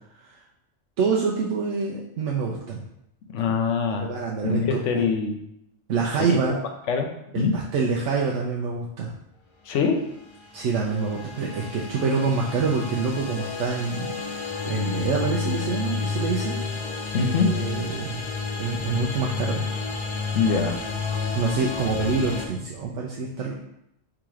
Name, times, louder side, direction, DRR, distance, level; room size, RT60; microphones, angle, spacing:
voice 1, 1.0-2.8 4.0-5.0 5.9-6.6 7.3-9.1 10.5-16.6 17.5-18.3 18.6-19.7 21.3-23.5, right 4 dB, 85° right, -2 dB, 0.9 m, -26 dB
voice 2, 3.3-4.1 4.4-5.4 6.2-6.6 6.9-7.1 7.3-7.5 9.6-10.0 17.1-17.5 20.3-20.8, left 5 dB, 75° left, 4 dB, 1.0 m, -23 dB
sound 1, 10.2-22.5, left 4 dB, 40° left, 0.4 m, -31 dB
3.7 x 3.0 x 4.7 m, 0.80 s
omnidirectional pair, 1.3 m